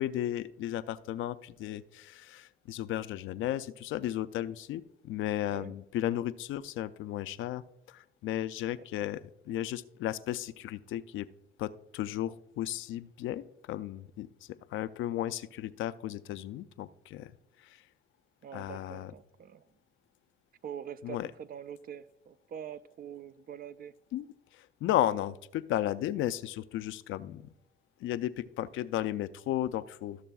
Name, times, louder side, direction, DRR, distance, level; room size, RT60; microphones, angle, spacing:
voice 1, 0.0-7.6 7.9-9.2 9.5-11.3 11.6-17.3 17.6-17.8 18.5-19.1 21.0-21.3 24.1-24.3 24.5-27.5 28.0-30.2, left 12 dB, 80° left, 14 dB, 0.4 m, -34 dB
voice 2, 18.4-19.7 20.6-23.9, right 8 dB, 50° right, 15 dB, 0.4 m, -44 dB
14.0 x 6.6 x 2.3 m, 0.83 s
cardioid pair, 90°, 20 cm